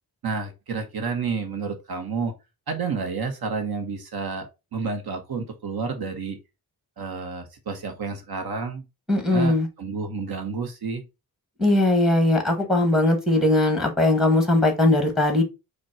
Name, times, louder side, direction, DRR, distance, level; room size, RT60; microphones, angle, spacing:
voice 1, 0.2-2.3 2.7-6.4 7.0-8.8 9.3-11.0, right 4 dB, 65° right, 0.9 m, -30 dB
voice 2, 9.1-9.7 11.6-15.4, left 1 dB, ahead, 1.1 m, -20 dB
5.1 x 2.2 x 4.4 m
wide cardioid pair, 170°, 40 cm